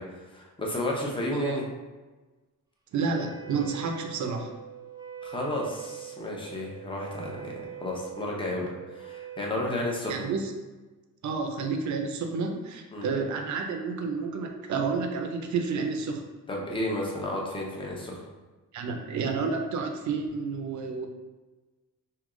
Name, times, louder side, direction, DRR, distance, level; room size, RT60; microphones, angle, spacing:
voice 1, 0.0-1.6 5.2-10.3 12.9-13.1 16.5-18.2, left 1 dB, 15° left, -2 dB, 0.7 m, -32 dB
voice 2, 2.9-4.5 10.1-10.5 11.2-16.2 18.7-21.1, right 4 dB, 60° right, 4 dB, 0.6 m, -30 dB
Wind instrument woodwind instrument, 3.0-9.7, right 10 dB, 10° right, 0.4 m, -43 dB
3.6 x 2.8 x 3.7 m, 1.2 s
cardioid pair, 145°, 32 cm